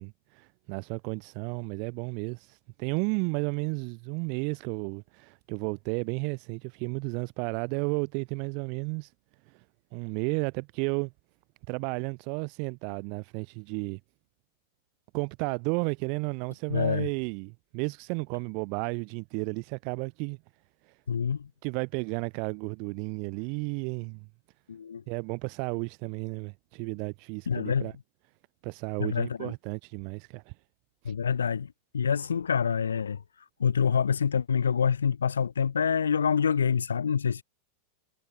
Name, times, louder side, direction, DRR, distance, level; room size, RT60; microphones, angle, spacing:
voice 1, 0.0-9.1 9.5-9.6 9.9-11.1 11.7-14.0 15.1-20.4 21.6-24.3 25.1-27.9 28.6-30.5 31.1-31.2, right 40 dB or more, 45° right, 2.1 m, -33 dB
voice 2, 16.7-17.1 21.1-21.5 24.7-25.0 27.5-27.9 29.0-29.5 31.0-33.2 33.6-37.4, left 7 dB, 70° left, 1.4 m, -26 dB
figure-of-eight pair, 90°, 0 cm